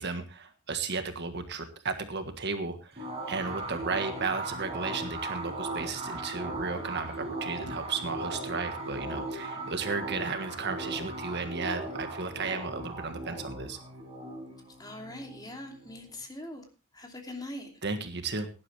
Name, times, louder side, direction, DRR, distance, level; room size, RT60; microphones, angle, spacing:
voice 1, 0.0-13.8 17.8-18.5, right 4 dB, 55° right, 8 dB, 1.5 m, -34 dB
sound 1, 3.0-16.2, right 2 dB, 30° right, 5.4 m, -38 dB
voice 2, 14.8-16.7 16.9-17.7, left 1 dB, 20° left, 2 dB, 2.8 m, -42 dB
17.5 x 11.0 x 3.4 m, 0.33 s
head